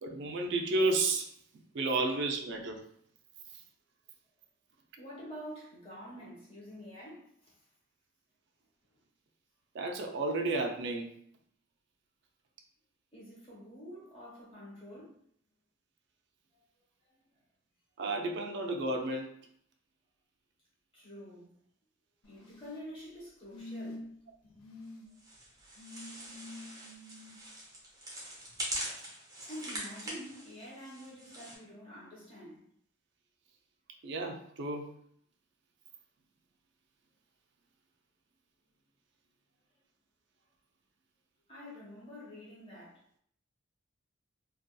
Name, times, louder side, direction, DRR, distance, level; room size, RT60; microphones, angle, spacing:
voice 1, 0.0-1.3 1.7-2.8 9.7-11.1 18.0-19.3 34.0-34.9, right 2 dB, 60° right, 0.4 m, -32 dB
voice 2, 5.0-7.6 13.1-15.2 17.1-17.2 20.9-21.6 22.3-24.1 24.4-24.7 29.4-32.6 41.5-43.0, equal, 30° left, 1.1 m, -47 dB
sound 1, 22.2-22.8 23.5-24.2 24.6-25.1 25.8-27.4 28.6-28.7, left 2 dB, 80° left, 0.7 m, -46 dB
sound 2, 25.2-31.6, right 1 dB, 20° right, 0.6 m, -43 dB
2.6 x 2.3 x 2.2 m
head